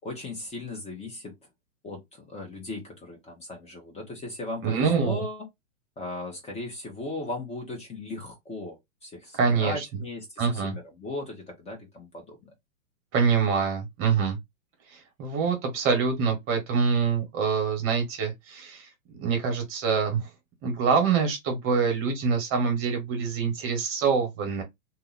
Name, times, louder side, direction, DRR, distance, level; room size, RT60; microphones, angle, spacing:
voice 1, 0.0-1.3 1.8-5.5 6.0-12.5, left 2 dB, 15° left, 1.3 m, -37 dB
voice 2, 4.6-5.2 9.3-9.8 10.4-10.7 13.1-14.4 14.9-20.3 20.6-24.6, right 5 dB, 30° right, 1.5 m, -25 dB
2.8 x 2.7 x 4.0 m
hypercardioid pair, 130°, 42 cm